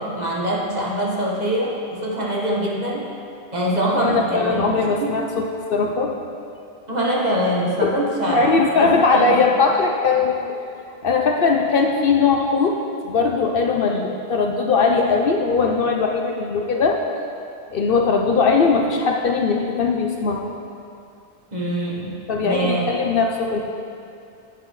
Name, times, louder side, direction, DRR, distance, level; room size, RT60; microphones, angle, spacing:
voice 1, 0.0-3.1 3.5-4.7 5.0-5.2 6.9-9.4 13.9-14.0 21.5-22.2 22.4-22.9, right 1 dB, 40° right, -4 dB, 1.5 m, -24 dB
voice 2, 4.0-6.2 7.8-7.9 8.3-10.5 11.0-17.0 17.7-20.5 22.3-23.6, left 4 dB, 60° left, 2 dB, 0.8 m, -20 dB
11.0 x 9.2 x 3.2 m, 2.5 s
omnidirectional pair, 1.2 m